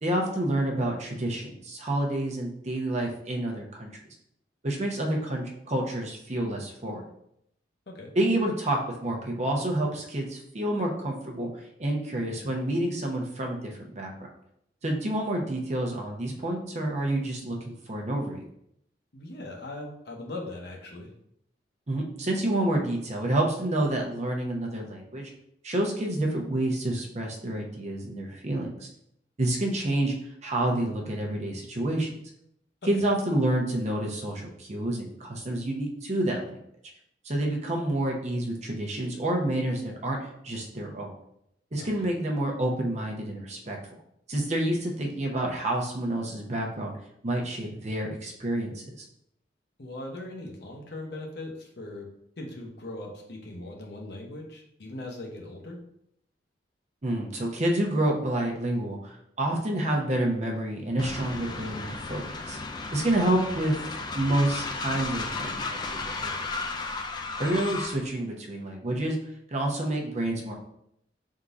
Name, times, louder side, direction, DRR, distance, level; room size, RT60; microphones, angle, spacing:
voice 1, 0.0-3.9 4.6-7.0 8.2-11.5 11.8-14.1 14.8-18.5 21.9-25.3 25.6-28.9 29.4-30.1 30.4-32.1 32.9-36.6 37.2-41.1 41.7-43.8 44.3-46.9 47.2-49.0 57.0-62.6 62.9-63.8 64.2-66.4 67.4-69.2 69.5-70.5, right 1 dB, 40° right, 0 dB, 0.7 m, -28 dB
voice 2, 19.1-21.1 32.8-33.1 41.8-42.1 49.8-52.1 52.4-55.8, left 2 dB, 60° left, 0 dB, 0.9 m, -40 dB
Train, 61.0-68.0, left 3 dB, 25° left, 0.3 m, -34 dB
3.7 x 2.7 x 4.6 m, 0.74 s
head